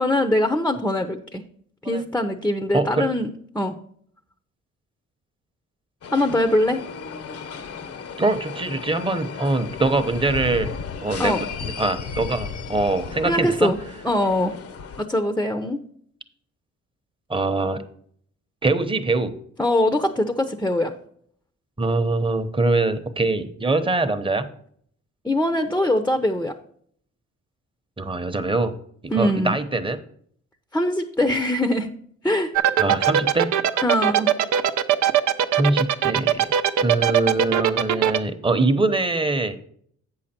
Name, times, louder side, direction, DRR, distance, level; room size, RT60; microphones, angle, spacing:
voice 1, 0.0-1.4 1.8-3.3 3.5-3.8 6.1-6.8 11.2-11.4 13.2-13.8 14.0-14.5 15.0-15.8 19.6-20.9 25.2-26.5 29.1-29.6 30.7-31.9 32.2-32.5 33.8-34.3, left 1 dB, 5° left, 7 dB, 0.7 m, -22 dB
voice 2, 2.7-3.1 8.2-10.7 11.0-11.3 11.6-13.7 17.3-17.8 18.6-19.3 21.8-24.5 28.0-28.7 29.0-30.0 32.8-33.8 35.6-36.5 36.8-39.6, right 2 dB, 15° right, 9 dB, 0.9 m, -23 dB
sound 1, 6.0-15.0, left 6 dB, 50° left, 0.8 m, -35 dB
sound 2, 32.6-38.2, right 10 dB, 75° right, 0.7 m, -19 dB
8.3 x 6.6 x 4.3 m, 0.62 s
cardioid pair, 90°, 30 cm